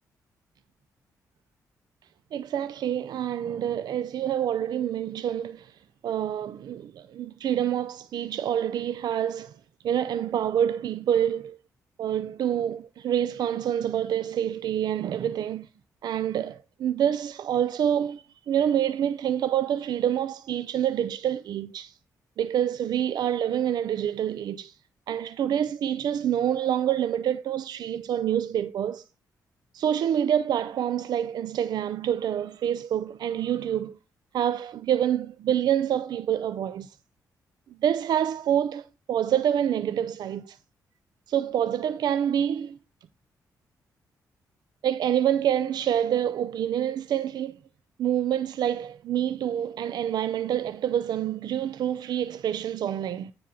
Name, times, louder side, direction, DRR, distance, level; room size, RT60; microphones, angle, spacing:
voice 1, 2.3-9.6 9.8-11.6 12.0-15.7 16.0-22.0 22.4-24.8 25.1-29.0 29.7-34.0 34.3-37.0 37.8-40.6 41.3-42.8 44.8-47.6 48.0-53.3, right 10 dB, 75° right, 0.4 m, -27 dB
9.4 x 3.8 x 5.6 m
cardioid pair, 60°, 7 cm